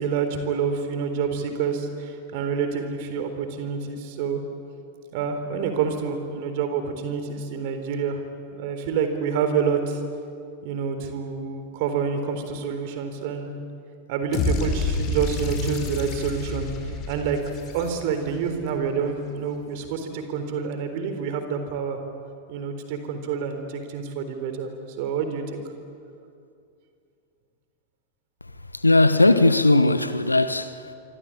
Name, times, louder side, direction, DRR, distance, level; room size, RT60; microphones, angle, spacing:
voice 1, 0.0-4.4 5.1-8.2 8.5-10.0 10.6-13.5 14.1-17.4 17.7-22.0 22.5-24.7 25.0-25.6, right 6 dB, 50° right, 3.9 m, -27 dB
sound 1, 14.3-18.4, left 3 dB, 35° left, 4.8 m, -28 dB
voice 2, 28.7-30.9, left 2 dB, 85° left, 1.3 m, -18 dB
27.0 x 25.0 x 8.8 m
figure-of-eight pair, 90°, 0 cm